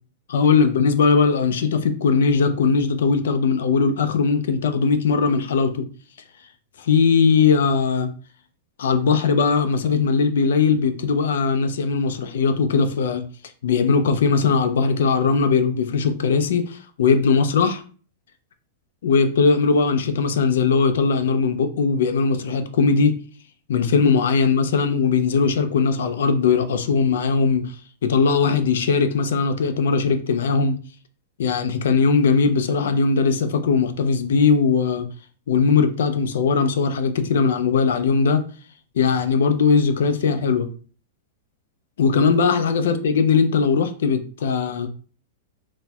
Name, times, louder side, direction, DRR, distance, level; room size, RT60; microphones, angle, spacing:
voice 1, 0.3-5.9 6.8-8.1 8.8-13.2 13.6-17.8 19.0-23.2 23.7-27.8 28.0-30.8 31.4-35.1 35.5-38.4 39.0-40.7 42.0-44.9, left 5 dB, 80° left, 0.4 m, -19 dB
4.2 x 2.1 x 2.2 m
supercardioid pair, 175°, 0 cm